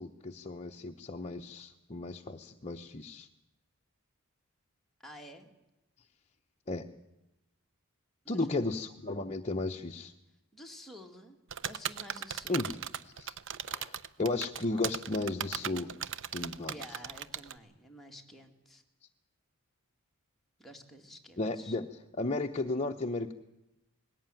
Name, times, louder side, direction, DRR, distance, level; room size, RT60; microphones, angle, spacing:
voice 1, 0.0-3.3 6.7-6.8 8.3-10.1 12.5-12.7 13.2-13.3 13.7-15.9 16.3-16.7 21.4-21.9 22.2-23.3, left 2 dB, 30° left, 2 dB, 0.8 m, -34 dB
voice 2, 5.0-5.5 8.2-8.7 10.5-11.4 11.6-12.8 16.6-18.8 20.6-21.8, left 1 dB, ahead, 0 dB, 2.2 m, -50 dB
sound 1, 11.5-17.6, right 9 dB, 60° right, 0.7 m, -37 dB
20.0 x 17.0 x 9.1 m, 0.94 s
head